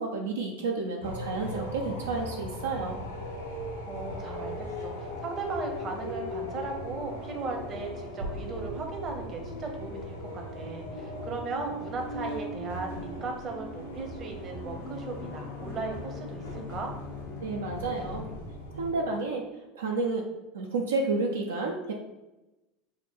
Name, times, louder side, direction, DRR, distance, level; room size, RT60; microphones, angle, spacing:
voice 1, 0.0-3.0 17.4-18.2 18.7-19.4 19.7-20.2 20.5-21.9, right 3 dB, 75° right, 1 dB, 0.3 m, -30 dB
sound 1, 1.0-18.9, left 1 dB, 80° left, 0.7 m, -39 dB
voice 2, 3.9-16.9, right 3 dB, 40° right, 3 dB, 0.7 m, -37 dB
sound 2, 8.2-12.1, equal, 90° right, 1.4 m, -44 dB
Bowed string instrument, 14.7-18.9, left 8 dB, 35° left, 0.4 m, -44 dB
3.6 x 2.1 x 4.2 m, 1.0 s
figure-of-eight pair, 75°, 0 cm